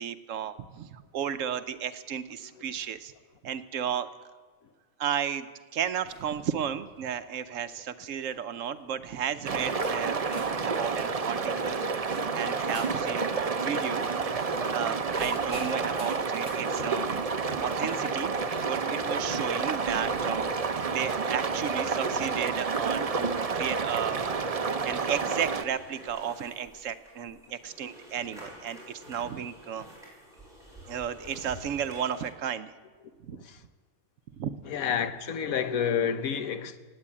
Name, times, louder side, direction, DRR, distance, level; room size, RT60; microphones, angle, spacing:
voice 1, 0.0-3.1 3.4-4.1 5.0-11.8 12.3-18.3 18.6-24.3 24.8-29.9 30.8-32.7 33.2-33.4 34.3-34.6, right 8 dB, 70° right, 1.0 m, -34 dB
sound 1, 6.1-6.4 6.9-7.2 8.0-8.3 9.2-9.3 9.8-13.1 14.0-16.7 18.4-18.5 19.8-20.5, left 1 dB, 50° left, 2.8 m, -46 dB
sound 2, 9.4-25.6, right 4 dB, 35° right, 0.6 m, -29 dB
sound 3, 25.2-32.3, equal, ahead, 5.6 m, -49 dB
voice 2, 33.3-33.6 34.6-36.8, left 7 dB, 80° left, 1.3 m, -29 dB
17.5 x 8.9 x 8.5 m
omnidirectional pair, 1.5 m